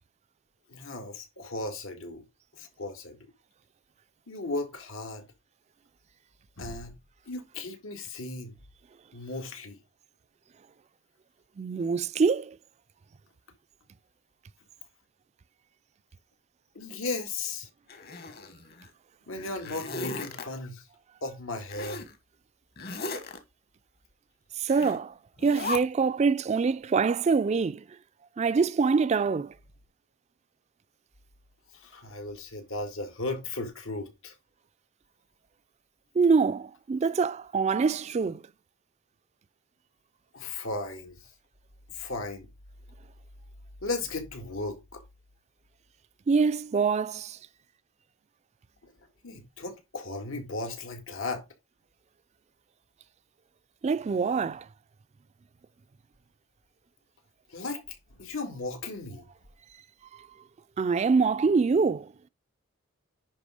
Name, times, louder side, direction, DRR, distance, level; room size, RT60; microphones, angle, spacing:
voice 1, 0.7-2.2 2.6-3.2 4.3-5.2 6.6-6.9 7.3-8.6 9.1-9.8 16.7-17.7 19.3-20.8 21.2-22.0 31.7-34.3 40.3-41.2 41.9-42.5 43.8-45.0 48.8-48.9 49.2-51.4 57.5-59.3, left 3 dB, 85° left, 2.0 m, -36 dB
voice 2, 11.6-12.6 24.6-25.1 25.4-27.8 28.4-29.5 36.1-38.4 46.3-47.4 53.8-54.7 60.1-60.2 60.8-62.1, right 5 dB, 35° right, 0.3 m, -25 dB
Zipper (clothing), 17.9-18.9 19.3-20.4 21.7-22.1 22.8-23.4 24.7-25.0 25.4-25.8, left 3 dB, 50° left, 1.4 m, -36 dB
10.5 x 3.6 x 4.9 m
head